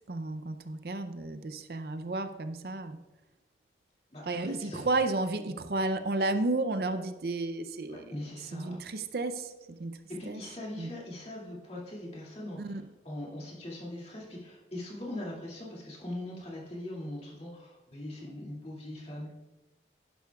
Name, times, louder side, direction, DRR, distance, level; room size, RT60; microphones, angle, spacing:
voice 1, 0.1-3.0 4.3-8.1 8.5-9.5 9.8-9.9 10.3-10.4 10.8-10.9 12.6-12.8, right 2 dB, 60° right, 9 dB, 0.5 m, -32 dB
voice 2, 4.1-4.9 7.9-8.8 10.2-12.8 13.0-19.3, left 1 dB, 35° left, -4 dB, 2.4 m, -41 dB
11.5 x 10.5 x 2.4 m, 1.1 s
head